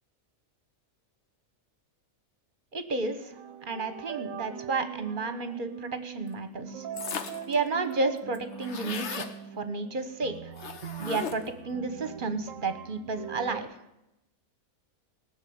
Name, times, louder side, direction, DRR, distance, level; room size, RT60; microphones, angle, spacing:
voice 1, 2.7-3.3 3.6-5.7 6.0-6.8 7.5-9.3 9.5-10.3 11.0-13.7, right 3 dB, 40° right, 9 dB, 1.3 m, -31 dB
sound 1, 3.3-13.6, right 8 dB, 75° right, 1.1 m, -42 dB
sound 2, 7.0-7.5 7.9-8.0 8.2-9.3 10.6-11.6, left 6 dB, 55° left, 1.3 m, -37 dB
18.0 x 6.6 x 8.7 m, 0.89 s
omnidirectional pair, 1.5 m